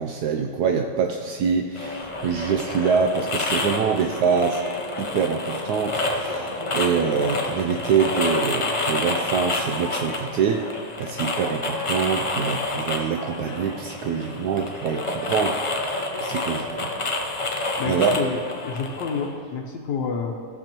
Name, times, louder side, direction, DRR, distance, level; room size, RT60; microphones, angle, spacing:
voice 1, 0.0-4.6 5.0-10.7 11.0-16.9 17.9-18.2, right 6 dB, 75° right, 4 dB, 1.1 m, -25 dB
sound 1, 1.7-19.3, left 2 dB, 45° left, 0.4 m, -28 dB
voice 2, 17.8-20.3, left 5 dB, 90° left, -1 dB, 1.4 m, -29 dB
15.0 x 6.9 x 2.9 m, 2.1 s
omnidirectional pair, 1.8 m